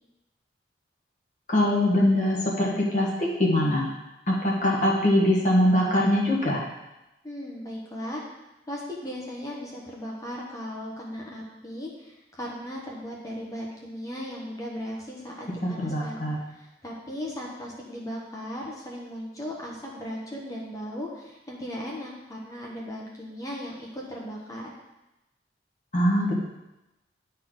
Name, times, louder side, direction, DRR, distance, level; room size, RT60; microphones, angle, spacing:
voice 1, 1.5-3.9 4.3-6.6 15.8-16.4 25.9-26.4, left 1 dB, 40° left, -3 dB, 1.6 m, -22 dB
voice 2, 7.2-8.2 8.7-24.7, equal, 20° left, -3 dB, 1.2 m, -37 dB
11.0 x 4.2 x 4.0 m, 0.99 s
head